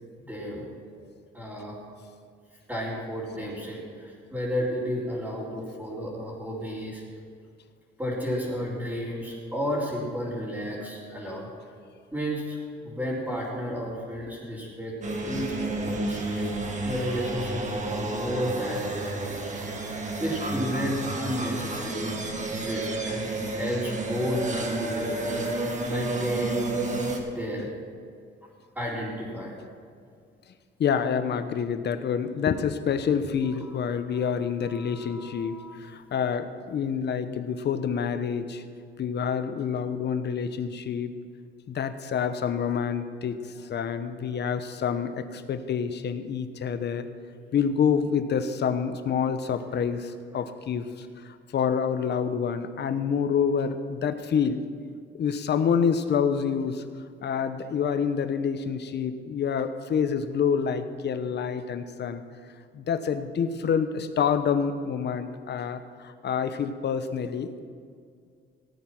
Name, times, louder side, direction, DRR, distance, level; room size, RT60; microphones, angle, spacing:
voice 1, 0.2-0.6 1.3-1.8 2.7-7.0 8.0-11.5 12.1-12.6 12.8-15.0 15.2-16.5 16.8-19.7 20.2-22.1 22.6-26.8 27.3-27.7 28.7-29.6 33.6-33.7 34.2-34.3 34.6-35.8 36.0-36.1 47.4-47.5, equal, 10° right, -10 dB, 4.4 m, -32 dB
sound 1, 15.0-27.2, right 2 dB, 35° right, 2.1 m, -31 dB
voice 2, 27.3-27.7 30.8-38.6 39.0-41.1 41.7-47.1 47.5-54.6 55.2-56.8 57.2-62.2 62.7-67.6, left 7 dB, 60° left, 10 dB, 1.0 m, -27 dB
17.0 x 9.1 x 6.0 m, 2.2 s
cardioid pair, 90°, 20 cm